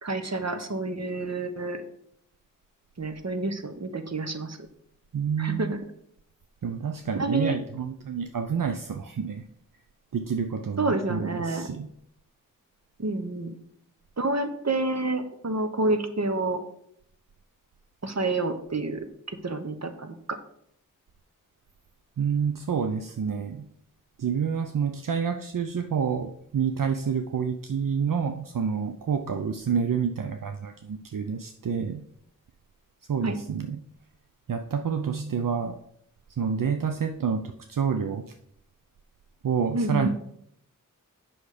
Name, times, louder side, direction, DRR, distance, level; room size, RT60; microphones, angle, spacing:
voice 1, 0.0-1.8 3.0-4.6 5.4-5.8 7.2-7.6 10.8-11.7 13.0-13.5 14.2-16.6 18.0-20.4 33.2-33.3 39.7-40.1, right 2 dB, 50° right, 8 dB, 1.1 m, -29 dB
voice 2, 5.1-5.7 6.6-9.4 10.1-11.9 22.2-23.7 24.2-32.0 33.1-33.8 34.5-35.8 36.3-38.3 39.4-40.1, right 6 dB, 75° right, 7 dB, 0.6 m, -28 dB
8.4 x 6.1 x 5.0 m, 0.71 s
wide cardioid pair, 60°, 33 cm